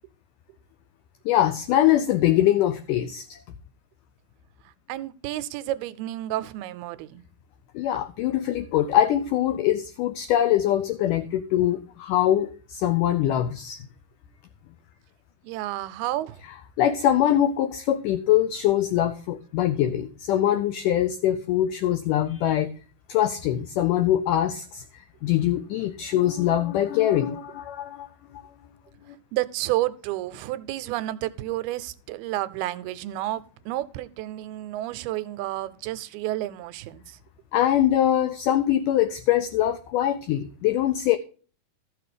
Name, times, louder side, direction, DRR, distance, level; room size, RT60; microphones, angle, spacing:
voice 1, 1.3-3.4 7.7-13.9 16.8-22.7 23.1-28.1 37.5-41.2, left 12 dB, 85° left, 1.8 m, -23 dB
voice 2, 4.9-7.2 15.4-16.4 29.3-37.2, right 15 dB, 80° right, 2.5 m, -31 dB
13.5 x 6.5 x 4.9 m
omnidirectional pair, 4.5 m